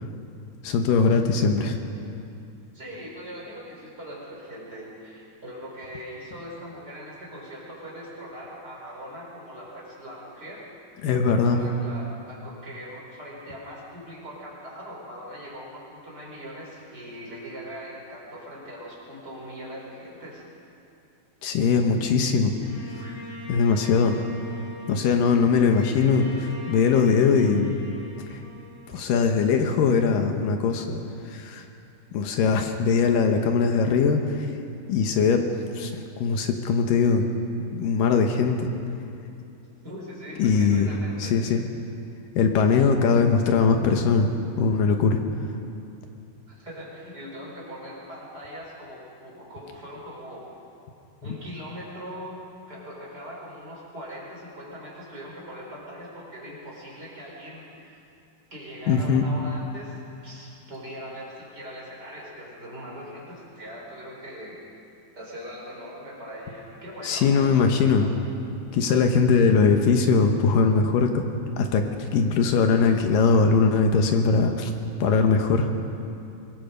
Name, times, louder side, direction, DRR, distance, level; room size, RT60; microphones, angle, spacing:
voice 1, 0.6-1.8 11.0-11.6 21.4-22.5 23.5-24.2 24.9-27.8 28.3-28.4 28.9-31.0 31.3-31.6 32.1-34.5 34.9-35.5 35.8-37.3 37.7-38.7 40.4-40.9 41.2-41.6 42.4-44.3 44.6-45.2 58.9-59.3 67.0-68.1 68.7-71.2 71.6-74.7 75.0-75.7, left 5 dB, 75° left, 4 dB, 2.7 m, -21 dB
voice 2, 2.7-10.7 11.4-20.4 22.9-23.1 39.8-41.4 46.5-50.6 51.2-52.4 52.7-58.0 58.5-64.6 65.1-68.1, equal, 25° right, -4 dB, 5.3 m, -41 dB
Bowed string instrument, 22.6-29.9, equal, 90° left, 7.3 m, -43 dB
24.0 x 21.0 x 5.2 m, 2.6 s
omnidirectional pair, 4.2 m